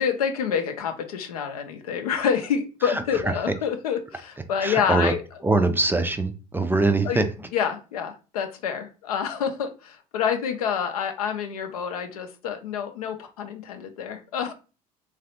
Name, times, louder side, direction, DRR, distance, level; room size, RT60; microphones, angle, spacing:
voice 1, 0.0-5.2 7.0-7.2 7.5-14.5, left 7 dB, 80° left, 6 dB, 0.5 m, -27 dB
voice 2, 2.8-3.2 4.6-5.1 5.4-7.5, right 2 dB, 10° right, 8 dB, 0.4 m, -23 dB
3.1 x 2.4 x 2.7 m, 0.33 s
hypercardioid pair, 60°, 19 cm